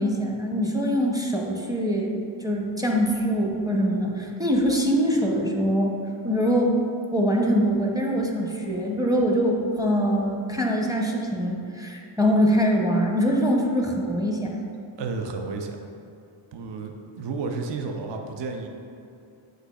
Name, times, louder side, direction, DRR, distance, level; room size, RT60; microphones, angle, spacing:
voice 1, 0.0-2.1 2.4-6.0 6.2-6.7 7.1-14.6, equal, 10° right, -1 dB, 0.6 m, -23 dB
voice 2, 15.0-15.8 16.5-18.7, right 4 dB, 60° right, 4 dB, 0.5 m, -32 dB
7.8 x 2.6 x 2.3 m, 2.6 s
cardioid pair, 50°, 49 cm